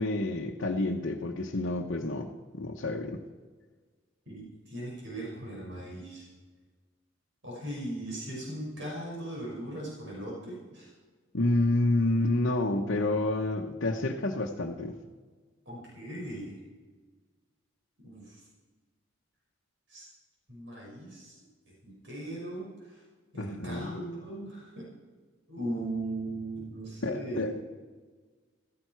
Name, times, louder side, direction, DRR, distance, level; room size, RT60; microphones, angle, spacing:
voice 1, 0.0-3.2 11.3-15.0 23.4-24.0 27.0-27.6, left 2 dB, 65° left, -1 dB, 1.0 m, -29 dB
voice 2, 4.3-6.3 7.4-10.9 15.7-16.5 18.0-18.4 19.9-20.0 20.5-21.4 21.8-23.0 23.3-24.8 25.5-27.5, right 1 dB, 70° right, -4 dB, 6.1 m, -38 dB
16.0 x 14.5 x 4.6 m, 1.4 s
head